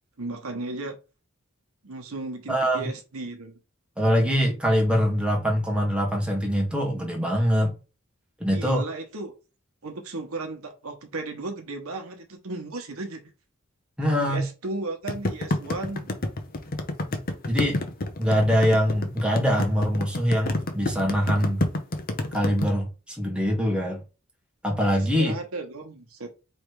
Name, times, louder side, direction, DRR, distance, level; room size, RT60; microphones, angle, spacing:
voice 1, 0.2-1.0 1.8-3.6 8.5-9.3 9.8-13.2 14.2-16.1 25.0-26.3, right 2 dB, 85° right, 1.1 m, -35 dB
voice 2, 2.5-2.9 4.0-7.7 8.4-8.8 14.0-14.4 17.5-17.8 18.2-21.7 22.3-24.0 24.6-25.4, equal, 5° right, 1.5 m, -23 dB
sound 1, 15.1-22.7, left 2 dB, 45° left, 0.8 m, -28 dB
3.3 x 3.2 x 4.7 m
head